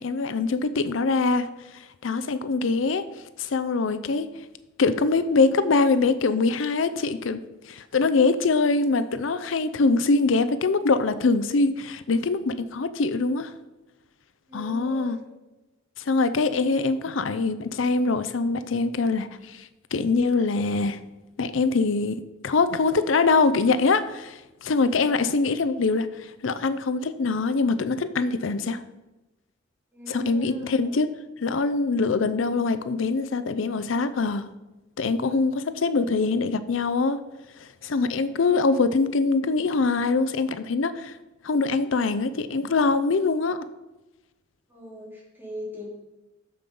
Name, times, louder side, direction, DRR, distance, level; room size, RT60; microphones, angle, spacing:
voice 1, 0.0-3.1 3.4-4.3 4.8-7.4 7.7-13.5 14.5-15.2 16.0-21.0 21.4-28.8 30.1-31.1 31.4-34.5 35.0-37.2 37.6-41.2 41.4-43.6, left 3 dB, 80° left, 13 dB, 0.5 m, -23 dB
voice 2, 14.5-15.2 29.9-30.9 44.7-46.0, left 1 dB, 10° right, -4 dB, 3.0 m, -39 dB
9.5 x 6.9 x 5.4 m, 1.0 s
head